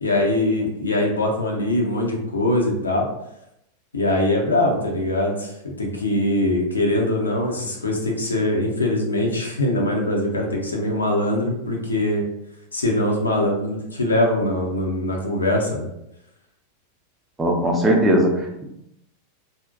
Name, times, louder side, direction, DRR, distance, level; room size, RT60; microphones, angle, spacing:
voice 1, 0.0-3.1 3.9-5.5 5.8-12.3 12.7-15.9, left 1 dB, 75° left, 0 dB, 0.5 m, -22 dB
voice 2, 17.4-18.6, equal, 10° right, 0 dB, 0.5 m, -19 dB
2.5 x 2.1 x 2.4 m, 0.81 s
figure-of-eight pair, 90°, 0 cm